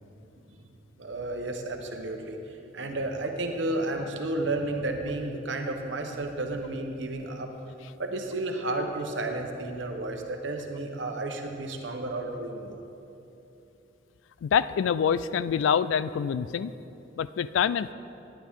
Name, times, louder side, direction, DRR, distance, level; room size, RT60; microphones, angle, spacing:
voice 1, 1.0-2.4 2.7-7.5 8.0-12.8, right 2 dB, 70° right, 3 dB, 1.0 m, -32 dB
voice 2, 14.4-16.7 17.2-17.9, left 7 dB, 80° left, 17 dB, 0.3 m, -26 dB
11.5 x 10.0 x 3.7 m, 2.8 s
head